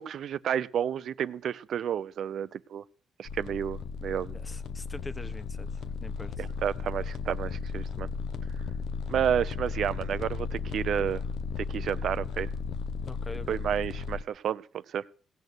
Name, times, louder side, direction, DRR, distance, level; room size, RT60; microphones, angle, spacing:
voice 1, 0.0-2.8 3.2-4.3 6.4-8.1 9.1-11.2 11.6-12.5 13.5-14.6 14.9-15.0, right 9 dB, 65° right, 0.8 m, -31 dB
sound 1, 3.2-14.2, left 5 dB, 75° left, 0.9 m, -35 dB
voice 2, 4.3-6.5 13.1-13.6, left 2 dB, 20° left, 1.3 m, -44 dB
17.5 x 6.8 x 8.1 m
cardioid pair, 90°, 0 cm